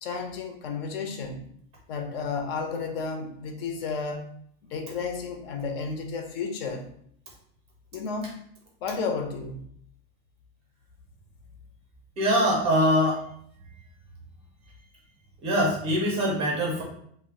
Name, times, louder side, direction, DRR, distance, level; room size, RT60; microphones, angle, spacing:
voice 1, 0.0-1.5 1.9-4.3 4.7-6.9 7.9-8.4 8.8-9.6, left 4 dB, 65° left, 5 dB, 0.5 m, -32 dB
voice 2, 12.2-13.2 15.4-16.8, equal, 20° right, -2 dB, 0.4 m, -23 dB
2.3 x 2.0 x 3.5 m, 0.66 s
supercardioid pair, 165°, 32 cm